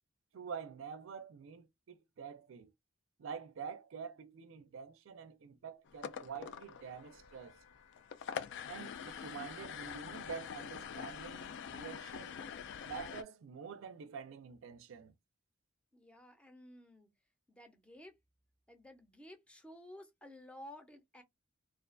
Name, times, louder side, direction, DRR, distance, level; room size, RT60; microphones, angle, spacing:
voice 1, 0.3-2.7 3.2-7.6 8.7-12.4 12.8-15.1, right 6 dB, 70° right, 0.4 m, -47 dB
Wind instrument woodwind instrument, 5.9-11.4, equal, 85° left, 0.6 m, -63 dB
sound 1, 5.9-13.2, left 7 dB, 60° left, 0.3 m, -45 dB
voice 2, 15.9-17.1 17.5-18.2 18.7-21.2, left 1 dB, 5° left, 0.5 m, -54 dB
2.4 x 2.2 x 2.4 m
head